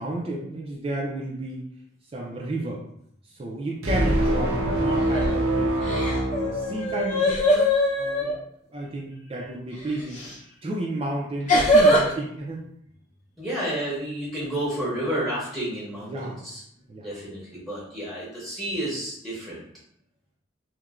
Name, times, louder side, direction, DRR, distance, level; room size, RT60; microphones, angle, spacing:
voice 1, 0.0-1.6 2.1-2.8 3.2-6.1 6.4-7.7 8.0-8.4 8.7-12.6 16.0-16.4 16.9-17.1, right 1 dB, 30° right, -2 dB, 0.3 m, -32 dB
sound 1, 3.8-7.3, right 1 dB, 85° right, 0.6 m, -25 dB
sound 2, 5.0-5.4 5.8-8.3 10.1-10.3 11.5-12.1, equal, 35° left, 0.6 m, -21 dB
voice 2, 13.4-16.6 17.0-19.6, right 1 dB, ahead, -8 dB, 0.7 m, -31 dB
3.0 x 2.1 x 2.4 m, 0.71 s
head